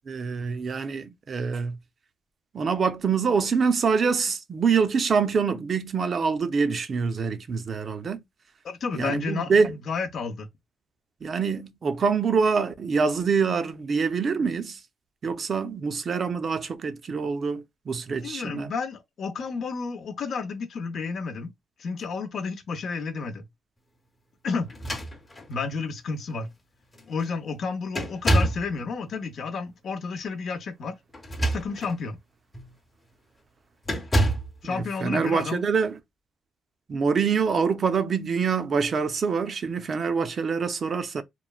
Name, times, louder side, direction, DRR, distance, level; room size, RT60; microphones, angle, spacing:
voice 1, 0.1-1.8 2.5-8.2 8.9-9.7 11.2-14.8 15.2-18.7 34.6-36.0 36.9-41.2, right 5 dB, 45° right, 0.5 m, -25 dB
voice 2, 8.6-10.5 18.2-21.5 21.8-23.4 24.4-24.7 25.5-26.5 27.1-31.0 31.5-32.2 34.6-35.6, left 4 dB, 60° left, 0.7 m, -31 dB
sound 1, 24.7-25.6 26.5-26.6 26.9-27.3 27.9-28.7 31.1-32.0 32.5-32.7 33.8-34.6, right 1 dB, 25° left, 0.8 m, -26 dB
3.1 x 2.1 x 2.3 m
cardioid pair, 90°, 0 cm